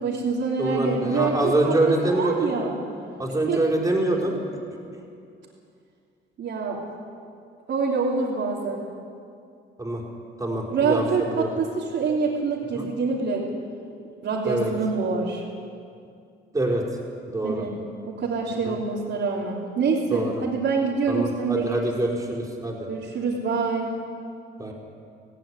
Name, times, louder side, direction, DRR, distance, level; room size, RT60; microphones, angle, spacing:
voice 1, 0.0-2.8 3.5-3.6 6.4-6.8 7.7-8.8 10.7-13.4 14.2-15.4 17.4-17.7 18.0-21.9 22.9-23.9, right 4 dB, 65° right, -5 dB, 3.0 m, -26 dB
voice 2, 0.6-2.6 3.2-4.4 9.8-10.0 10.4-11.0 11.3-11.5 12.7-12.9 14.4-14.7 16.5-16.8 17.3-17.6 18.6-18.7 20.1-20.3 21.1-22.8 24.6-24.7, right 2 dB, 15° right, -1 dB, 4.8 m, -25 dB
17.0 x 16.5 x 9.7 m, 2.4 s
cardioid pair, 90°, 20 cm